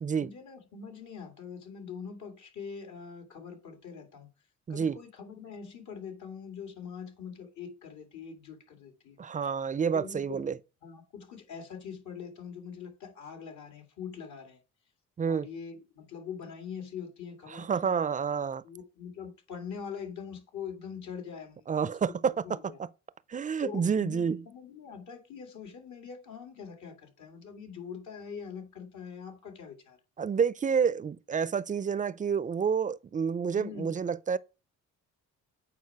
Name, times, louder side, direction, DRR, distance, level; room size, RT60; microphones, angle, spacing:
voice 1, 0.2-4.3 4.7-9.2 9.7-10.4 10.8-14.6 15.3-18.0 18.6-22.2 22.4-22.8 23.6-30.0 33.6-33.9, left 6 dB, 70° left, 2.2 m, -43 dB
voice 2, 4.7-5.0 9.2-10.6 15.2-15.5 17.5-18.6 21.7-22.9 23.3-24.4 30.2-34.4, right 6 dB, 25° right, 0.5 m, -29 dB
8.6 x 4.5 x 4.6 m
cardioid pair, 90°, 30 cm